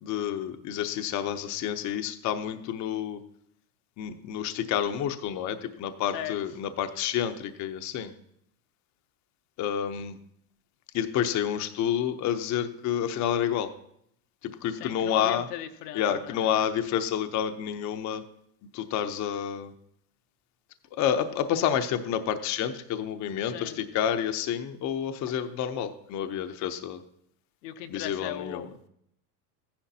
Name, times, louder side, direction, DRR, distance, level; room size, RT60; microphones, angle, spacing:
voice 1, 0.0-3.2 4.0-8.1 9.6-10.2 10.9-13.7 14.4-15.5 15.9-18.2 18.7-19.7 20.9-27.0 27.9-28.7, left 9 dB, 35° left, 8 dB, 0.7 m, -29 dB
voice 2, 14.7-16.5 23.4-23.8 27.6-28.9, left 11 dB, 80° left, 6 dB, 0.9 m, -38 dB
14.0 x 10.0 x 2.8 m, 0.73 s
supercardioid pair, 115°, 47 cm